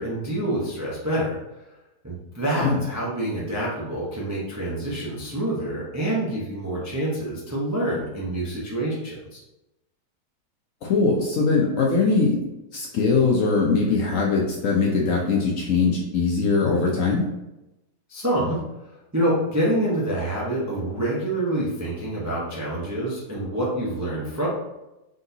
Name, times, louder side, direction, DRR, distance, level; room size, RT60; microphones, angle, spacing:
voice 1, 0.0-1.4 2.0-9.4 18.1-18.6 19.1-24.5, right 1 dB, 25° right, -6 dB, 0.4 m, -27 dB
voice 2, 10.8-12.4 12.7-17.2, left 4 dB, 65° left, -2 dB, 0.8 m, -21 dB
3.9 x 3.7 x 2.7 m, 0.97 s
omnidirectional pair, 1.8 m